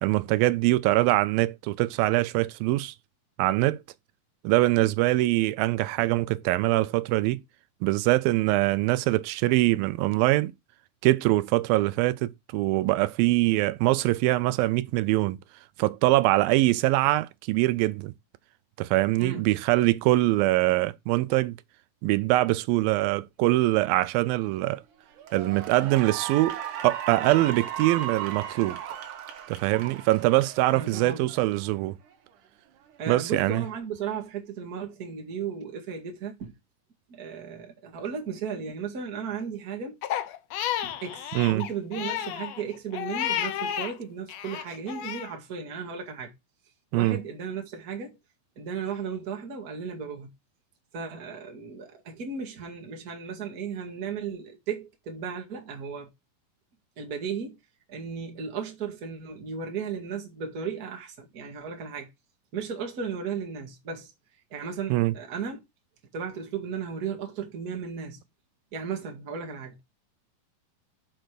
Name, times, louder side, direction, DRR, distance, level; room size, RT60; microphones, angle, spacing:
voice 1, 0.0-2.9 3.4-3.8 4.4-7.4 7.8-10.5 11.0-15.4 15.8-18.1 18.8-21.6 22.0-24.8 25.3-28.8 29.5-31.9 33.1-33.7 41.4-41.6 46.9-47.2 64.9-65.1, right 18 dB, 90° right, 2.4 m, -23 dB
voice 2, 19.2-19.5 30.7-31.3 33.0-36.5 37.1-40.0 40.8-46.3 46.9-48.2 48.5-50.3 50.9-56.1 57.0-57.6 57.9-62.1 62.5-64.1 64.5-65.6 66.1-68.2 68.7-69.8, right 6 dB, 35° right, 1.7 m, -35 dB
Cheering / Applause, 24.4-24.7 25.2-31.7, right 9 dB, 65° right, 2.6 m, -36 dB
Crying sobbing, 40.0-43.9 44.3-45.3, left 11 dB, 75° left, 1.5 m, -32 dB
6.6 x 5.2 x 6.0 m
omnidirectional pair, 4.1 m